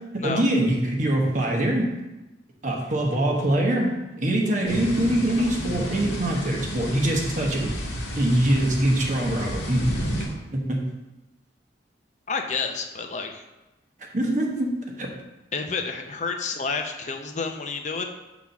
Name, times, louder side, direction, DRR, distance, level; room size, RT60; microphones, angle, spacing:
voice 1, 0.0-1.9 2.6-7.7 8.2-9.9 10.5-10.8 14.1-14.7 15.0-15.1, right 1 dB, 40° right, 0 dB, 1.1 m, -23 dB
sound 1, 4.7-10.3, equal, 75° left, 1.8 m, -31 dB
voice 2, 12.3-13.4 15.5-18.0, left 4 dB, 40° left, 4 dB, 0.5 m, -29 dB
6.0 x 4.0 x 5.8 m, 1.0 s
head